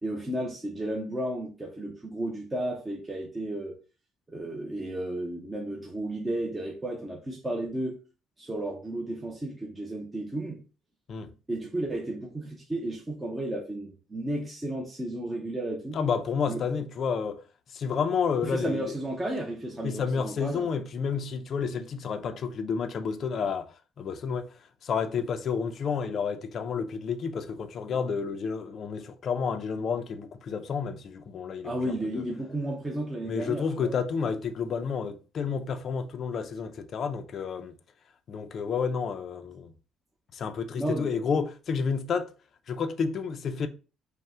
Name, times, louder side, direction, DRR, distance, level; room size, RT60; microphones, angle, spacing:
voice 1, 0.0-3.8 4.3-8.0 8.4-10.6 11.5-16.0 16.5-16.6 18.4-20.7 31.6-33.9 40.8-41.1, right 1 dB, 10° right, 0.5 m, -33 dB
voice 2, 15.9-17.4 17.7-18.9 19.8-23.7 24.0-24.5 24.8-32.2 33.2-37.7 38.3-39.7 40.3-42.3 42.7-43.7, left 6 dB, 40° left, 0.4 m, -30 dB
5.3 x 2.1 x 3.4 m
cardioid pair, 155°, 0 cm